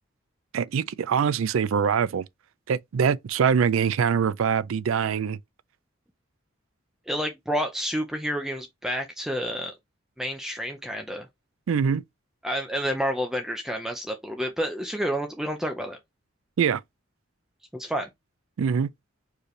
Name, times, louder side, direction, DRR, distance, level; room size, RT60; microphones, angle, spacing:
voice 1, 0.5-2.2 2.7-5.4 11.7-12.0 16.6-16.8 18.6-18.9, right 7 dB, 85° right, 0.4 m, -23 dB
voice 2, 7.1-9.7 10.2-11.3 12.4-16.0 17.7-18.1, equal, ahead, 0.5 m, -29 dB
4.7 x 3.2 x 3.2 m
head